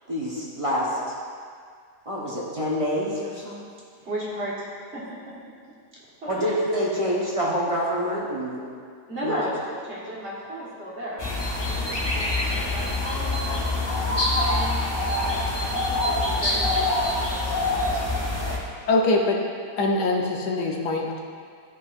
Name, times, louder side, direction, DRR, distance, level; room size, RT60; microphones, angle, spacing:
voice 1, 0.1-1.1 2.0-3.6 6.2-8.6 9.2-9.4 11.8-12.2, equal, 25° right, -6 dB, 1.0 m, -27 dB
voice 2, 4.0-4.7 4.9-5.3 6.2-6.5 9.1-11.3 12.7-17.8, right 1 dB, 45° right, -7 dB, 1.9 m, -34 dB
sound 1, 11.2-18.6, left 2 dB, 20° left, 0.7 m, -25 dB
voice 3, 18.9-19.4 19.8-21.2, left 2 dB, 90° left, 1 dB, 1.4 m, -23 dB
12.5 x 5.3 x 2.5 m, 2.1 s
omnidirectional pair, 1.7 m